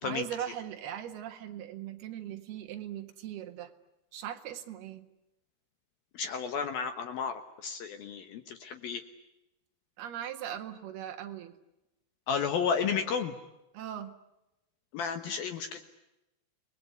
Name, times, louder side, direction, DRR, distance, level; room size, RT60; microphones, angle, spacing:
voice 1, 0.0-3.7 4.1-5.1 10.0-11.6 13.7-14.1, right 10 dB, 60° right, 6 dB, 3.1 m, -39 dB
voice 2, 6.1-9.0 12.3-13.3 14.9-15.8, left 6 dB, 70° left, 8 dB, 2.3 m, -32 dB
29.5 x 20.5 x 9.6 m, 0.94 s
omnidirectional pair, 5.9 m